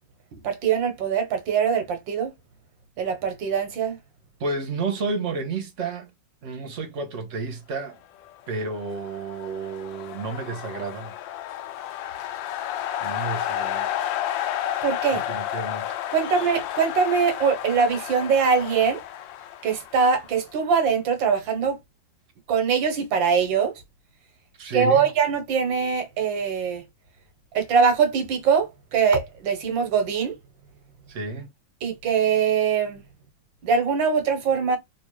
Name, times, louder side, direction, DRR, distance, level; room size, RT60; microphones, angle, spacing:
voice 1, 0.4-2.3 3.0-4.0 14.8-15.2 16.1-19.0 19.6-21.8 22.5-23.7 24.7-26.8 27.5-30.3 31.8-33.0 33.6-34.8, right 6 dB, 85° right, 1.7 m, -22 dB
voice 2, 4.4-6.1 6.4-8.0 8.5-11.1 13.0-13.9 15.1-15.9 24.6-25.1 31.1-31.5, right 4 dB, 50° right, 1.1 m, -31 dB
sound 1, 8.6-20.6, left 11 dB, 85° left, 1.3 m, -31 dB
3.4 x 2.9 x 3.0 m
omnidirectional pair, 2.0 m